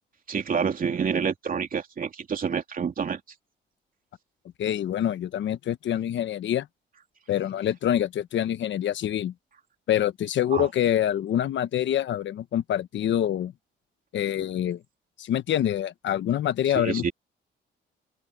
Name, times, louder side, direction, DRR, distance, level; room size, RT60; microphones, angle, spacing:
voice 1, 0.3-3.2 10.5-10.7 16.7-17.1, right 6 dB, 45° right, 3.1 m, -28 dB
voice 2, 4.6-6.7 7.3-9.3 9.9-13.5 14.1-14.8 15.2-17.1, left 10 dB, 70° left, 1.1 m, -26 dB
open air
cardioid pair, 90°, 20 cm